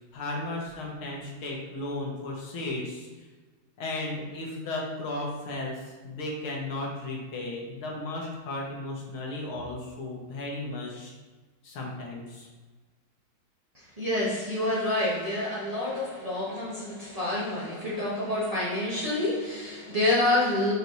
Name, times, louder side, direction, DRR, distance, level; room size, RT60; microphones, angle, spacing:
voice 1, 0.1-3.3 3.8-11.1 11.6-12.5, left 2 dB, 80° left, -2 dB, 2.2 m, -35 dB
voice 2, 14.0-20.7, left 1 dB, 20° right, -9 dB, 1.5 m, -28 dB
6.3 x 4.8 x 4.1 m, 1.3 s
omnidirectional pair, 2.3 m